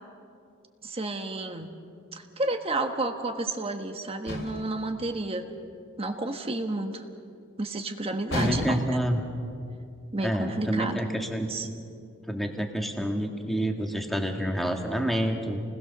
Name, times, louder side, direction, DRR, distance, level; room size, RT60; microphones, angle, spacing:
voice 1, 0.8-1.7 2.1-5.5 6.0-7.0 7.6-9.0 10.1-11.1 11.5-11.7, right 2 dB, 25° right, 5 dB, 1.4 m, -31 dB
sound 1, 4.3-4.8 8.3-9.1, left 1 dB, 60° left, 3.4 m, -32 dB
voice 2, 8.3-9.2 10.2-11.5 12.3-15.6, equal, ahead, 2 dB, 1.9 m, -28 dB
30.0 x 20.5 x 6.8 m, 2.5 s
head